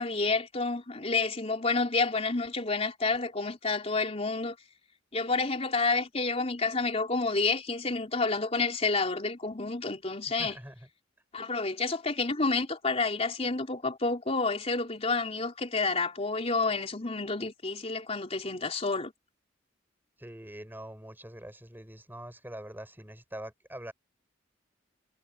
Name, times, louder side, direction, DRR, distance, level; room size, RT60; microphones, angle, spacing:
voice 1, 0.0-4.6 5.1-10.6 11.3-19.1, left 3 dB, 35° left, 3.7 m, -29 dB
voice 2, 10.4-10.8 20.2-23.9, right 1 dB, 10° right, 5.9 m, -44 dB
head